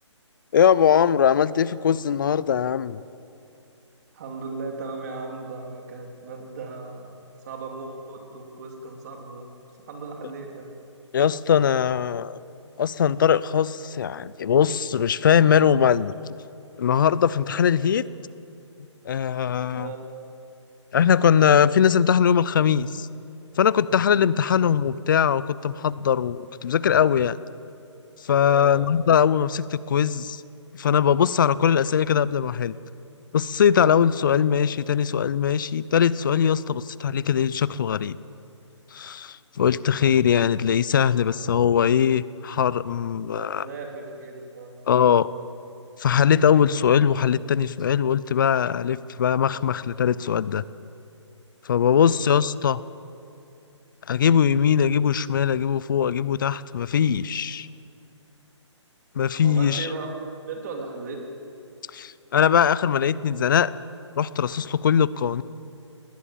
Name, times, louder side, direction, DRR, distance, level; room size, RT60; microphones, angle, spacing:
voice 1, 0.5-3.0 11.1-12.4 12.8-16.1 16.8-18.0 19.0-19.9 20.9-23.1 23.6-27.4 28.2-30.4 30.7-32.8 33.3-38.2 38.9-43.7 44.9-45.3 46.0-50.6 51.6-52.8 54.1-57.7 59.1-59.9 61.9-63.7 64.2-65.4, left 8 dB, 40° left, 19 dB, 0.6 m, -21 dB
voice 2, 4.1-9.5 9.8-10.7 19.7-20.0 28.4-28.7 43.3-44.8 51.9-52.2 59.4-60.1 60.5-61.2, right 4 dB, 35° right, 2 dB, 3.3 m, -37 dB
20.0 x 18.0 x 7.4 m, 2.7 s
hypercardioid pair, 160°, 16 cm